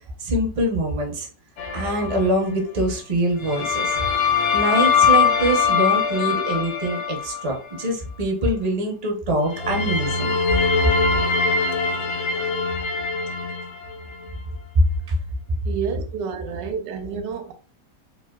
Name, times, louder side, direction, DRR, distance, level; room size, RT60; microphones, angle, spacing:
voice 1, 0.2-1.3 1.7-4.0 4.5-10.3 14.7-15.2, right 1 dB, 40° right, 0.4 m, -23 dB
sound 1, 1.6-2.4 3.4-7.8 9.5-14.3, left 5 dB, 80° left, 1.3 m, -22 dB
voice 2, 15.6-17.5, right 6 dB, 90° right, 1.2 m, -29 dB
3.2 x 2.5 x 2.3 m
omnidirectional pair, 1.8 m